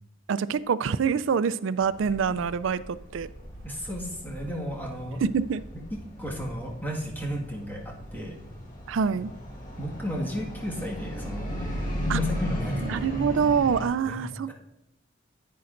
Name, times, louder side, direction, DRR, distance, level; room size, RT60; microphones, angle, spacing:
voice 1, 0.3-3.3 5.2-5.6 8.9-9.3 12.1-12.2 12.8-14.5, right 6 dB, 70° right, 16 dB, 0.4 m, -26 dB
sound 1, 1.8-13.9, left 1 dB, 40° left, 1.6 m, -36 dB
voice 2, 3.6-5.2 5.9-8.4 9.1-9.2 9.8-11.5 12.2-13.0 14.0-14.2 14.5-14.6, equal, 10° left, -3 dB, 1.8 m, -34 dB
10.0 x 9.4 x 2.6 m, 0.87 s
head